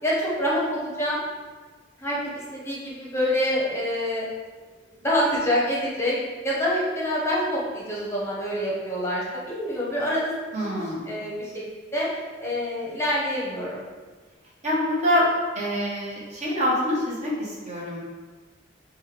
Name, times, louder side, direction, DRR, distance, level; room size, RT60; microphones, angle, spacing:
voice 1, 0.0-1.2 2.0-4.2 4.9-6.2 6.4-10.3 10.7-12.1 12.4-13.8, equal, 15° left, -7 dB, 0.8 m, -26 dB
voice 2, 10.5-11.1 14.6-15.3 15.5-18.0, left 1 dB, 40° right, -6 dB, 1.0 m, -25 dB
5.4 x 2.2 x 3.2 m, 1.4 s
head